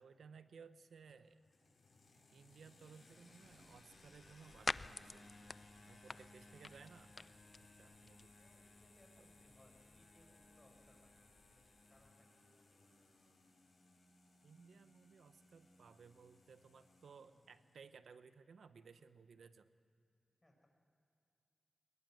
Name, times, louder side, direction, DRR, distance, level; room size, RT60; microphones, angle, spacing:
voice 1, 0.0-1.4 2.3-5.3 5.9-7.1 7.6-8.3 9.2-9.3 14.4-19.7, right 5 dB, 85° right, 12 dB, 0.8 m, -60 dB
sound 1, 1.1-17.8, left 2 dB, 70° left, 6.5 m, -64 dB
sound 2, 3.4-12.1, left 3 dB, 45° left, 0.4 m, -50 dB
voice 2, 5.7-6.0 8.3-13.1 20.4-20.7, left 1 dB, 20° left, 2 dB, 6.4 m, -70 dB
21.5 x 19.5 x 7.7 m, 2.5 s
cardioid pair, 55°, 0 cm